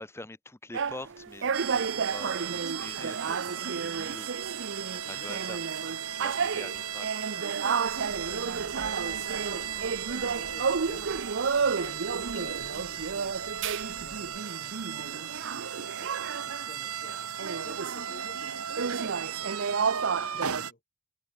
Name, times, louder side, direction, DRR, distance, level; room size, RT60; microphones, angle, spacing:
voice 1, 0.0-5.6 6.1-7.1, left 2 dB, 10° left, 0.8 m, -45 dB
sound 1, 0.7-16.8 17.0-20.6, right 5 dB, 55° right, 0.6 m, -32 dB
sound 2, 1.5-20.7, right 9 dB, 80° right, 1.6 m, -36 dB
voice 2, 5.0-5.6 6.7-6.8 8.1-20.8, left 2 dB, 40° left, 3.5 m, -52 dB
sound 3, 7.8-14.4, left 1 dB, 80° left, 4.3 m, -53 dB
head